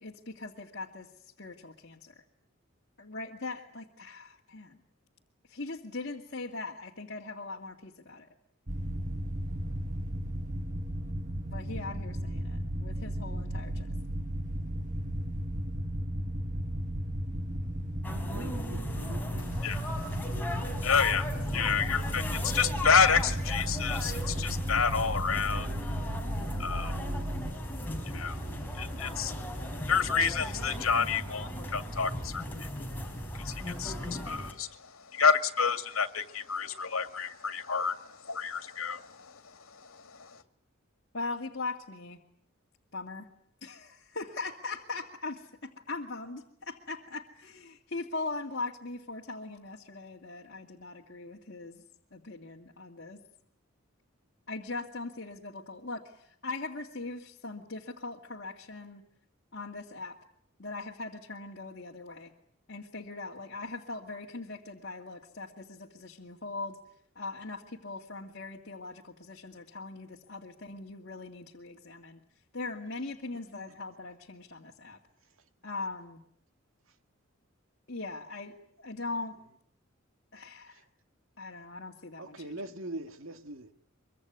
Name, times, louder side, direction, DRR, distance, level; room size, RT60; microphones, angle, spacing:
voice 1, 0.0-1.1 1.4-2.2 3.0-4.8 5.5-8.3 11.5-13.9 21.5-21.8 41.1-42.2 42.9-43.3 43.6-51.8 52.1-53.2 54.5-59.0 59.5-60.2 60.6-62.3 62.7-66.8 67.2-72.2 72.5-75.0 75.6-76.2 77.9-79.4 80.3-80.8 81.4-82.6, left 3 dB, 55° left, 2.3 m, -40 dB
sound 1, 8.7-27.5, right 1 dB, 40° right, 1.4 m, -35 dB
sound 2, 18.0-34.5, equal, 10° left, 4.3 m, -37 dB
voice 2, 18.3-19.6 82.2-83.7, right 2 dB, 75° right, 1.9 m, -42 dB
voice 3, 19.5-19.8 20.6-25.7 26.6-26.9 28.1-28.4 28.7-29.3 29.9-32.7 33.3-39.4 39.7-40.4, left 6 dB, 85° left, 2.1 m, -29 dB
24.0 x 24.0 x 9.6 m
head